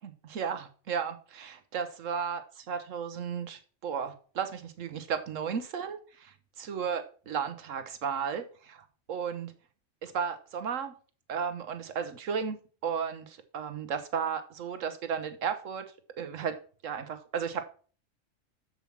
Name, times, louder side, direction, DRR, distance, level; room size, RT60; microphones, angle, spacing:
voice 1, 0.0-9.5 10.0-10.9 11.3-15.9 16.2-16.6 16.8-17.6, right 7 dB, 75° right, 10 dB, 1.2 m, -34 dB
7.9 x 7.2 x 5.8 m, 0.41 s
omnidirectional pair, 1.3 m